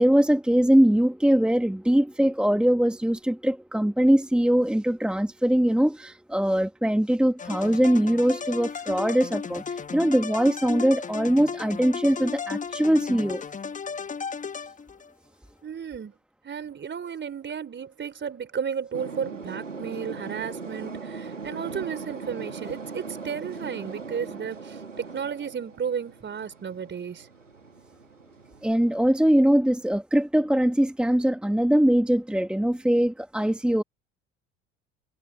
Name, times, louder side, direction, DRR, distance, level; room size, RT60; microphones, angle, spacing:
voice 1, 0.0-13.4 28.6-33.8, equal, 5° right, 1.8 m, -22 dB
sound 1, 7.4-15.1, left 5 dB, 20° left, 1.4 m, -34 dB
voice 2, 15.6-16.1 16.4-27.3, right 7 dB, 30° right, 4.6 m, -33 dB
sound 2, 18.9-29.2, right 4 dB, 85° right, 2.4 m, -40 dB
figure-of-eight pair, 60°, 37 cm